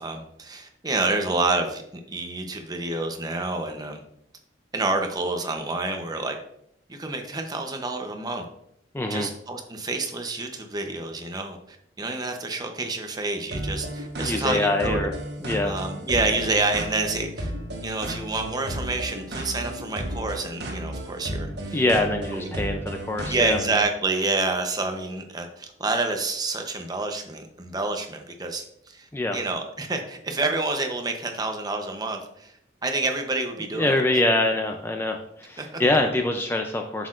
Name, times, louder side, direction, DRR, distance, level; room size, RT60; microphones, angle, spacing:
voice 1, 0.0-1.8 2.1-4.0 4.7-6.4 6.9-8.4 9.1-15.1 15.6-17.5 17.8-21.8 22.3-22.6 23.3-34.0 35.6-35.8, right 3 dB, 20° right, 4 dB, 0.7 m, -28 dB
voice 2, 8.9-9.3 14.2-15.1 15.4-15.7 21.7-23.6 29.1-29.4 33.7-37.1, left 2 dB, 15° left, 4 dB, 0.4 m, -24 dB
sound 1, 13.5-23.8, right 1 dB, 60° right, 1.2 m, -33 dB
7.8 x 6.4 x 2.5 m, 0.73 s
head